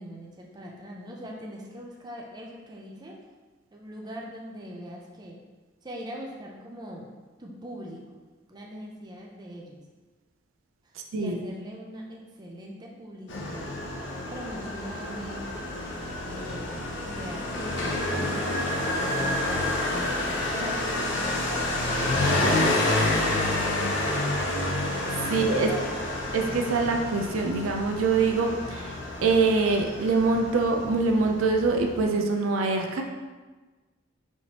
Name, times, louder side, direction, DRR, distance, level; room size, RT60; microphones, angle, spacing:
voice 1, 0.0-3.2 3.7-5.4 5.8-7.1 7.4-8.2 8.5-9.8 10.8-13.7 14.3-15.6 16.2-16.7 17.0-18.5 18.9-19.8 20.5-23.5 25.2-25.9, equal, 20° right, -2 dB, 0.5 m, -41 dB
Motorcycle, 13.3-32.1, left 1 dB, 60° left, 0.6 m, -29 dB
voice 2, 25.3-25.7 26.3-33.0, right 3 dB, 75° right, 3 dB, 0.4 m, -24 dB
4.3 x 3.2 x 2.9 m, 1.3 s
head